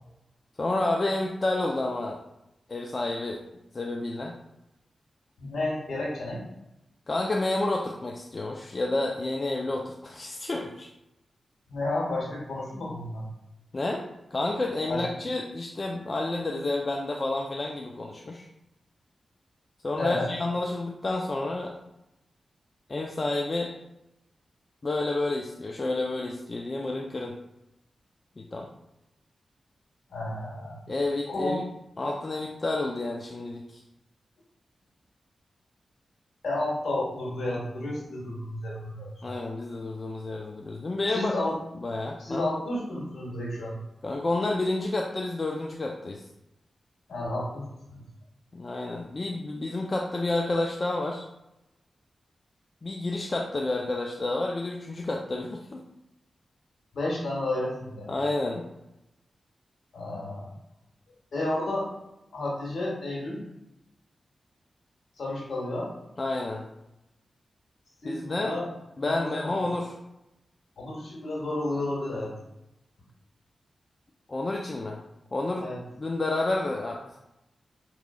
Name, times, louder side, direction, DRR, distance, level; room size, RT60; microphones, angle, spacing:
voice 1, 0.6-2.2 2.7-3.4 3.7-4.3 7.1-10.9 13.7-14.0 14.3-18.5 19.8-21.7 22.9-23.7 24.8-27.3 28.4-28.7 30.9-31.6 32.0-33.8 39.2-41.3 41.7-42.4 44.0-46.2 48.5-51.3 52.8-55.8 58.1-58.7 66.2-66.6 68.0-68.5 69.0-69.9 74.3-75.0 75.3-75.7 76.0-77.2, left 2 dB, 45° left, 0 dB, 0.4 m, -30 dB
voice 2, 5.4-6.4 11.7-13.2 14.9-15.0 20.0-20.3 30.1-30.8 31.3-31.6 36.4-39.4 41.1-41.6 42.2-43.8 47.1-48.0 56.9-58.1 59.9-60.5 61.3-61.9 62.3-63.4 65.2-65.9 68.0-68.7 69.0-69.6 70.8-72.3 75.6-75.8, left 2 dB, 70° left, -4 dB, 1.5 m, -31 dB
4.8 x 3.0 x 2.3 m, 0.90 s
cardioid pair, 40°, 0 cm